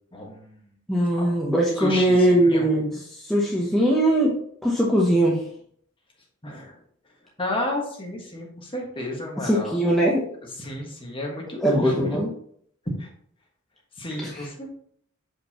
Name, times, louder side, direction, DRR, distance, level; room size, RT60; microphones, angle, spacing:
voice 1, 0.1-0.6 1.2-1.3 1.8-2.7 6.4-6.8 7.4-9.7 10.6-12.2 13.0-13.1 14.0-14.7, left 1 dB, 25° left, -1 dB, 1.6 m, -32 dB
voice 2, 0.9-4.4 4.6-5.4 9.4-10.2 11.6-12.3 14.2-14.5, right 1 dB, ahead, -4 dB, 0.8 m, -21 dB
6.6 x 5.2 x 3.0 m, 0.64 s
head